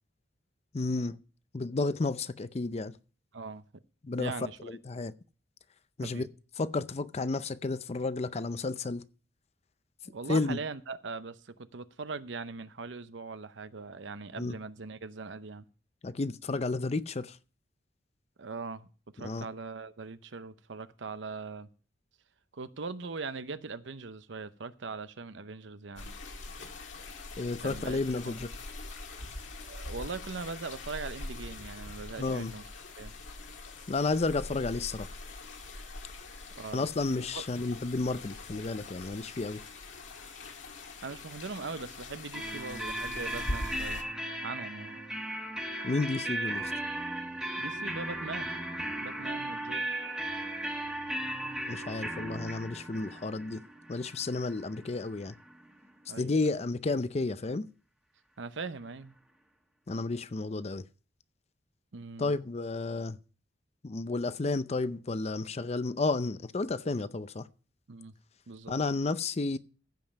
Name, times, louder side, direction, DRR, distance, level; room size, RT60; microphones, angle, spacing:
voice 1, 0.7-1.2 1.5-2.9 4.0-4.3 4.6-5.1 6.0-6.3 6.6-9.0 10.3-10.6 14.4-14.5 16.0-17.4 19.2-19.4 27.4-28.5 32.2-32.5 33.9-35.1 36.7-39.6 45.8-46.7 51.7-53.6 53.9-55.3 56.2-57.7 59.9-60.8 62.2-63.2 63.8-67.5 68.7-69.6, left 3 dB, 35° left, 0.5 m, -32 dB
voice 2, 3.3-3.7 4.2-4.8 6.0-6.3 10.0-15.6 18.4-18.9 19.1-21.7 22.5-26.1 27.6-28.3 29.7-32.7 33.0-33.1 36.6-36.9 37.3-37.4 41.0-44.0 44.4-45.0 47.6-48.5 49.0-49.8 56.1-56.4 58.4-59.2 61.9-62.3 67.9-68.1 68.5-68.8, right 4 dB, 70° right, 0.7 m, -41 dB
sound 1, 26.0-44.0, left 2 dB, 75° left, 2.1 m, -43 dB
sound 2, 42.3-55.9, right 1 dB, 5° right, 1.4 m, -37 dB
15.0 x 5.4 x 5.8 m
head